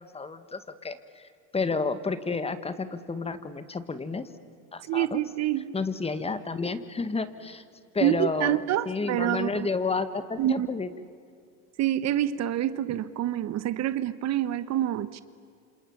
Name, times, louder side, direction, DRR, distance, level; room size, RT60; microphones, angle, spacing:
voice 1, 0.0-4.3 4.7-5.2 5.7-7.6 7.9-8.6 8.8-10.9, left 4 dB, 15° left, 12 dB, 1.7 m, -31 dB
voice 2, 4.8-5.7 8.0-9.7 10.4-10.7 11.8-15.2, right 12 dB, 45° right, 15 dB, 1.1 m, -27 dB
28.5 x 27.0 x 7.3 m, 2.3 s
supercardioid pair, 120°, 36 cm